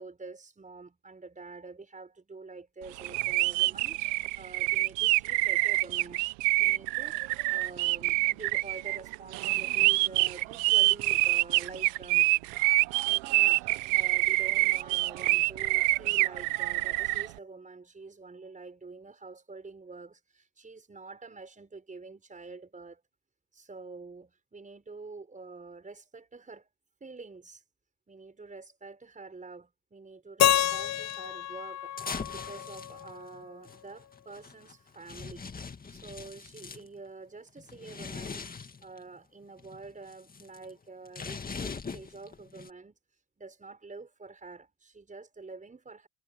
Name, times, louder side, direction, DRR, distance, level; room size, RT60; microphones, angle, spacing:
voice 1, 0.0-6.2 6.6-7.2 7.5-12.3 13.2-23.0 23.5-26.7 27.0-27.6 28.1-35.4 35.9-46.1, right 3 dB, 20° right, 6.2 m, -47 dB
sound 1, 3.0-17.3, right 21 dB, 85° right, 1.2 m, -26 dB
Keyboard (musical), 30.4-33.4, left 12 dB, 40° left, 0.7 m, -29 dB
sound 2, 30.7-31.2 32.0-36.9 37.6-39.0 39.4-42.7, left 5 dB, 20° left, 2.1 m, -42 dB
cardioid pair, 115°, 42 cm